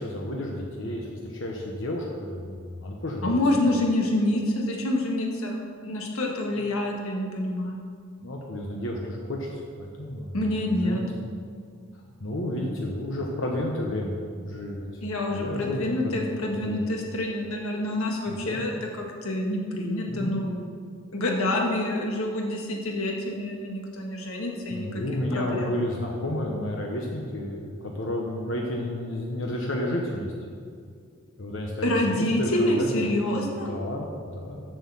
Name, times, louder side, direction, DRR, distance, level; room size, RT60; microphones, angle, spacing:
voice 1, 0.0-3.4 8.2-10.4 10.8-11.0 12.2-14.9 15.3-16.4 16.6-16.8 18.3-18.6 20.1-20.4 24.7-30.3 31.4-33.0 33.7-34.6, left 1 dB, 65° left, -1 dB, 1.0 m, -31 dB
voice 2, 3.2-7.8 10.3-11.0 15.0-20.6 21.1-25.0 25.3-25.8 31.8-33.7, left 1 dB, 85° left, 0 dB, 1.7 m, -27 dB
7.8 x 6.6 x 7.0 m, 2.2 s
head